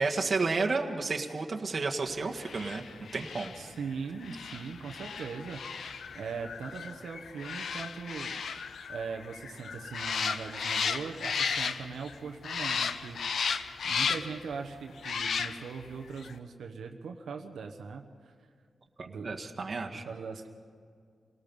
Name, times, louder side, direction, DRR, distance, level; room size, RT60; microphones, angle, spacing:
voice 1, 0.0-2.8 3.1-3.5 19.0-20.0, right 3 dB, 40° right, 1 dB, 1.7 m, -31 dB
sound 1, 2.4-12.1 12.4-14.5 15.0-15.8 16.2-16.3, left 6 dB, 70° left, 0.8 m, -35 dB
voice 2, 3.5-8.3 8.9-18.3 19.0-19.4 20.0-20.5, right 5 dB, 85° right, 3 dB, 1.1 m, -40 dB
27.5 x 18.5 x 5.5 m, 2.2 s
wide cardioid pair, 110°, 0 cm